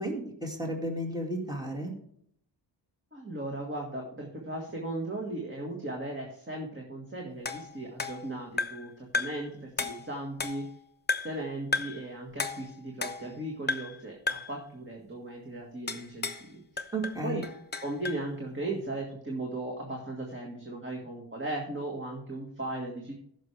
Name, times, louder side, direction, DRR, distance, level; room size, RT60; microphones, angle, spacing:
voice 1, 0.0-1.9 16.9-17.4, right 1 dB, 10° right, 1 dB, 2.3 m, -33 dB
voice 2, 3.1-10.6 11.2-16.9 17.2-17.4 17.8-23.1, right 2 dB, 25° right, 0 dB, 1.9 m, -37 dB
sound 1, 7.5-8.9 9.1-9.5 9.8-10.8 11.1-11.4 11.7-12.0 12.4-13.4 13.7-14.0 14.3-14.6 15.9-16.5 16.8-18.2, left 3 dB, 20° left, 0.9 m, -34 dB
15.0 x 6.3 x 3.4 m, 0.68 s
wide cardioid pair, 110°, 45 cm